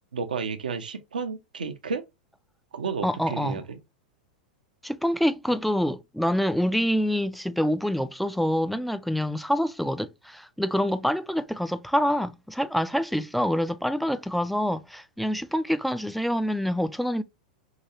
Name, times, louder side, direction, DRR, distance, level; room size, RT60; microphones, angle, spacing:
voice 1, 0.1-2.0 2.7-3.8, right 5 dB, 80° right, 0.7 m, -32 dB
voice 2, 3.0-3.6 4.8-17.2, equal, ahead, 0.4 m, -26 dB
4.8 x 2.3 x 2.8 m
hypercardioid pair, 95°, 5 cm